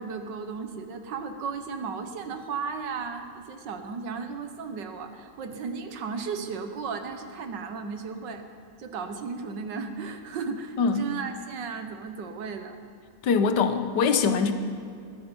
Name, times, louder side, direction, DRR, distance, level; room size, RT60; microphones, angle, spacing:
voice 1, 0.0-8.4 8.8-12.8, right 5 dB, 90° right, 7 dB, 1.9 m, -35 dB
voice 2, 13.2-14.5, left 5 dB, 75° left, 9 dB, 1.6 m, -22 dB
21.0 x 12.5 x 5.4 m, 2.5 s
omnidirectional pair, 1.9 m